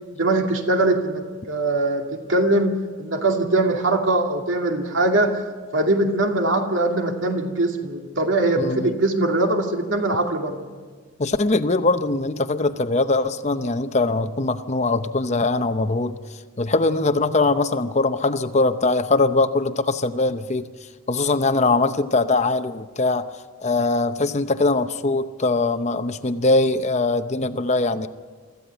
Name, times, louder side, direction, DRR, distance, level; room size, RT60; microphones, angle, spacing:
voice 1, 0.1-2.7 3.0-5.3 5.7-10.6, right 2 dB, 60° right, 3 dB, 2.5 m, -21 dB
voice 2, 8.6-8.9 11.2-16.2 16.6-20.7 21.1-23.3 23.6-28.1, left 3 dB, 30° left, 10 dB, 0.7 m, -21 dB
25.0 x 14.5 x 7.9 m, 1.5 s
head